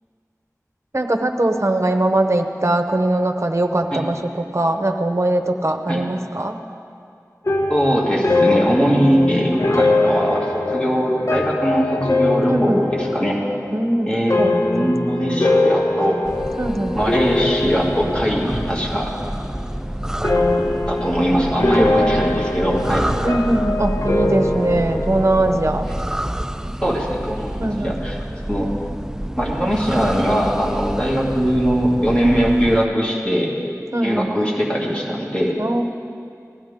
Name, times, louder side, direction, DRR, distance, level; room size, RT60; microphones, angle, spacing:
voice 1, 0.9-6.6 12.5-12.8 13.7-14.9 16.6-17.0 21.6-21.8 23.2-25.9 27.6-27.9 33.9-34.3 35.6-35.8, right 1 dB, 50° right, 5 dB, 0.8 m, -21 dB
sound 1, 7.5-18.9 19.2-19.8 20.2-25.6, left 2 dB, 55° left, 0.8 m, -22 dB
voice 2, 7.7-13.4 14.1-16.2 17.0-19.1 20.9-23.1 26.8-28.2 28.5-28.7 29.4-33.6 34.0-35.6, equal, 15° left, -4 dB, 2.4 m, -21 dB
sound 2, 16.2-32.9, right 1 dB, 10° right, 0.3 m, -28 dB
16.5 x 12.0 x 3.7 m, 2.4 s
wide cardioid pair, 40°, 6 cm